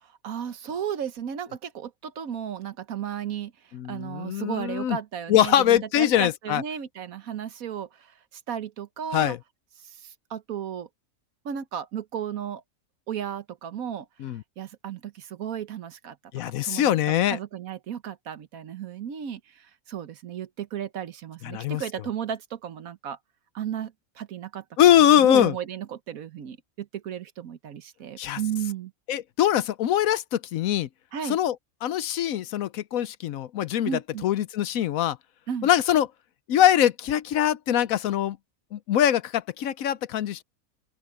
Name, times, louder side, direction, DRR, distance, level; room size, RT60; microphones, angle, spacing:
voice 1, 0.0-3.5 3.9-9.4 9.8-10.9 11.4-12.6 13.1-14.1 14.6-16.2 16.6-16.9 17.3-23.2 23.5-28.9 31.1-31.4 33.9-34.2 35.5-35.7, right 9 dB, 70° right, 1.4 m, -34 dB
voice 2, 3.7-5.0 5.3-6.6 9.1-9.4 14.2-14.4 16.3-17.4 21.4-21.8 24.8-25.5 28.2-28.4 29.1-30.9 31.2-31.5 31.8-33.9 34.2-35.2 35.6-36.1 36.5-38.4 38.7-40.4, left 11 dB, 70° left, 1.0 m, -22 dB
open air
omnidirectional pair, 1.5 m